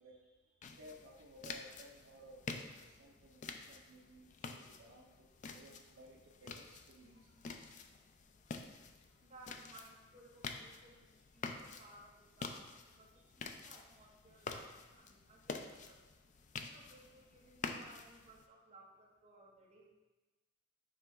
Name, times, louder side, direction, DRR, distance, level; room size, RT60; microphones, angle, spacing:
voice 1, 0.0-7.6 13.1-13.3 13.6-13.7 14.3-14.4, right 1 dB, 65° right, -1 dB, 0.6 m, -58 dB
sound 1, 0.6-18.5, left 4 dB, 40° left, 0.3 m, -49 dB
voice 2, 9.1-16.0 16.6-19.9, right 2 dB, 35° right, -3 dB, 1.0 m, -61 dB
6.6 x 3.4 x 4.1 m, 1.1 s
head